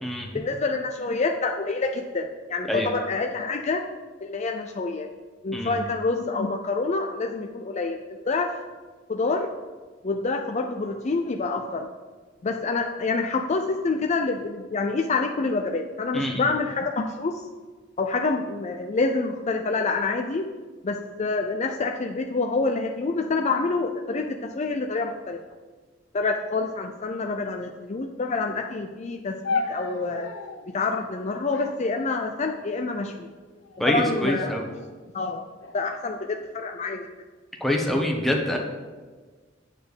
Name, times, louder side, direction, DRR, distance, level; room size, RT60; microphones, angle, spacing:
voice 1, 0.3-3.8 4.2-5.1 5.4-8.5 9.1-9.5 10.0-11.9 12.4-17.4 18.0-20.5 20.8-25.4 26.1-30.3 30.7-33.3 33.9-34.6 35.1-35.4 35.7-37.1, left 3 dB, 35° left, 3 dB, 0.5 m, -27 dB
voice 2, 16.1-16.4 33.8-34.6 37.6-38.6, left 1 dB, ahead, 0 dB, 1.1 m, -25 dB
sound 1, 29.4-30.7 31.5-32.7 33.5-34.0 34.3-34.9 35.6-36.6, left 4 dB, 75° left, 0.9 m, -35 dB
8.9 x 4.4 x 6.7 m, 1.4 s
head